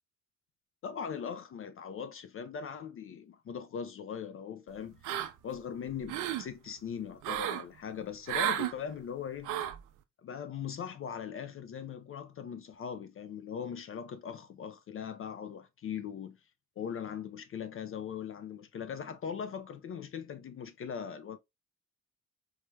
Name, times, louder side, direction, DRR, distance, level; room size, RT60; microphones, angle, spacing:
voice 1, 0.8-5.0 5.4-9.5 10.2-16.4 16.8-21.4, left 7 dB, 45° left, 0.4 m, -40 dB
sound 1, 5.0-5.6 5.9-6.5 7.2-7.6 8.3-8.7 9.4-9.8, right 11 dB, 90° right, 0.5 m, -32 dB
4.7 x 2.1 x 3.1 m
cardioid pair, 90°, 30 cm